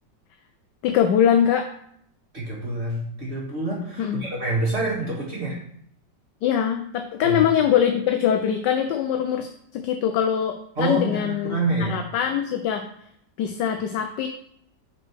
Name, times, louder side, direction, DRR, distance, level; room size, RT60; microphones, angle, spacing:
voice 1, 0.8-1.7 4.0-4.3 6.4-11.6 11.9-12.9 13.4-14.3, left 9 dB, 75° left, 6 dB, 1.2 m, -22 dB
voice 2, 2.3-5.6 7.2-7.4 10.8-12.0, right 2 dB, 35° right, -4 dB, 1.9 m, -27 dB
5.3 x 4.4 x 6.2 m, 0.69 s
omnidirectional pair, 2.0 m